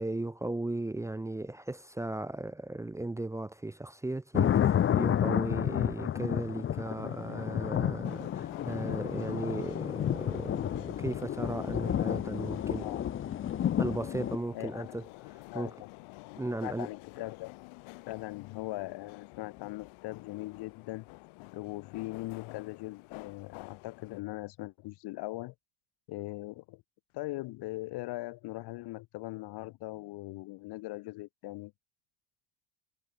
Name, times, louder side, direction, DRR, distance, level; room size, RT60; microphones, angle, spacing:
voice 1, 0.0-12.9 13.8-15.7 16.4-16.9, right 2 dB, 5° right, 0.8 m, -36 dB
sound 1, 4.3-14.4, left 10 dB, 25° left, 0.9 m, -30 dB
sound 2, 8.0-24.2, left 26 dB, 90° left, 3.1 m, -49 dB
voice 2, 14.5-15.0 15.4-15.7 16.6-17.5 18.1-21.0 21.5-25.5 26.1-26.8 27.1-31.7, left 20 dB, 55° left, 1.1 m, -40 dB
cardioid pair, 175°, 47 cm